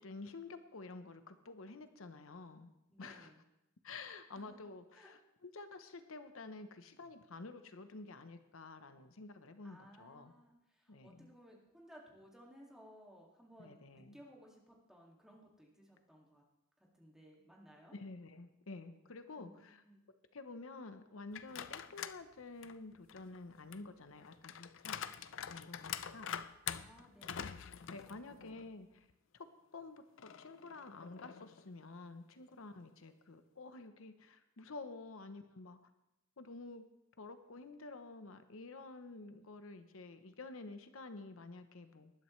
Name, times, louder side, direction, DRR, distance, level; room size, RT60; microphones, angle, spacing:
voice 1, 0.0-2.7 3.0-3.3 3.8-10.3 10.9-11.3 13.6-14.2 17.9-19.8 20.3-25.1 25.5-26.3 27.5-29.1 29.3-29.5 29.7-35.8 36.4-36.8 37.2-42.1, left 3 dB, 85° left, 9 dB, 0.9 m, -50 dB
voice 2, 2.9-3.4 4.3-4.6 4.9-5.2 9.6-16.4 16.8-17.9 19.4-20.0 26.7-27.5 27.8-28.3, equal, 5° right, -2 dB, 2.3 m, -60 dB
sound 1, 21.3-22.2 22.6-28.7 29.1-29.2 30.2-31.7, left 8 dB, 65° left, 0.5 m, -45 dB
19.5 x 11.5 x 3.2 m, 0.91 s
head